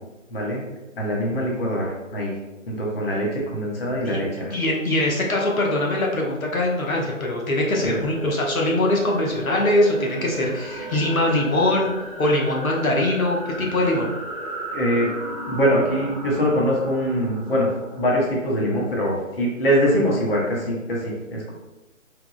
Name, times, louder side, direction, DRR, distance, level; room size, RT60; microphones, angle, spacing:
voice 1, 0.3-0.7 0.9-2.3 2.7-4.5 7.8-8.0 14.7-15.1 15.5-21.5, equal, 45° left, -3 dB, 0.9 m, -23 dB
voice 2, 4.5-11.9 12.2-14.1, left 1 dB, 85° left, -1 dB, 1.0 m, -22 dB
sound 1, 7.6-19.0, right 2 dB, 25° right, 0.6 m, -35 dB
4.6 x 2.1 x 2.3 m, 1.1 s
figure-of-eight pair, 160°, 40 cm